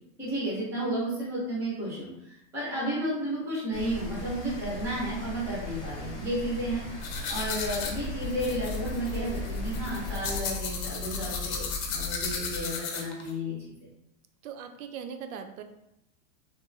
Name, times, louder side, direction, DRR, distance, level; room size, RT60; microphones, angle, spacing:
voice 1, 0.2-6.8 7.3-13.7, right 1 dB, 5° right, -7 dB, 0.4 m, -32 dB
Rain, 3.7-10.4, equal, 10° left, 0.8 m, -39 dB
sound 1, 7.0-13.3, left 5 dB, 85° left, 0.7 m, -35 dB
sound 2, 7.6-12.6, left 3 dB, 55° left, 0.6 m, -38 dB
voice 2, 14.4-15.6, right 7 dB, 85° right, 7 dB, 0.5 m, -39 dB
2.9 x 2.2 x 2.5 m, 0.83 s
supercardioid pair, 165°, 41 cm